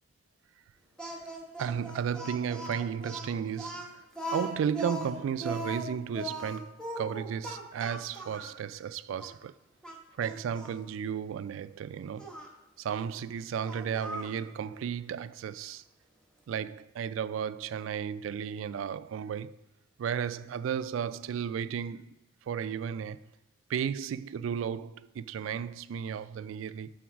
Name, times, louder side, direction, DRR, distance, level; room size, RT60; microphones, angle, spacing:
Speech, 1.0-8.6 9.2-9.3 9.8-10.8 12.2-12.5 13.6-14.4, right 1 dB, 5° left, 0.9 m, -39 dB
voice 1, 1.6-9.5 10.2-12.3 12.8-15.8 16.5-19.6 20.0-22.2 22.5-23.2 23.7-26.9, right 7 dB, 90° right, 0.3 m, -34 dB
5.8 x 3.9 x 6.2 m
head